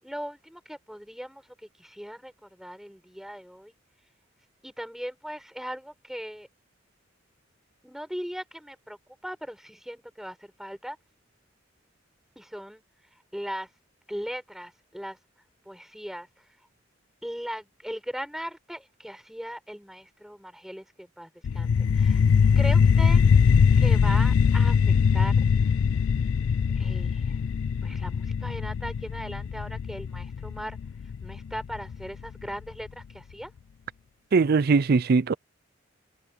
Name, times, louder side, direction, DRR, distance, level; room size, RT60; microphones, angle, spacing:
voice 1, 0.0-3.7 4.6-6.5 7.8-9.0 9.2-11.0 12.3-12.8 13.3-13.7 14.1-15.2 15.6-16.4 17.2-22.2 22.5-23.2 23.8-25.4 26.7-27.4 27.8-30.8 31.2-33.5, equal, ahead, 6.6 m, -38 dB
sound 1, 21.4-32.5, left 6 dB, 85° left, 0.4 m, -22 dB
voice 2, 34.3-35.3, right 4 dB, 55° right, 0.4 m, -20 dB
open air
head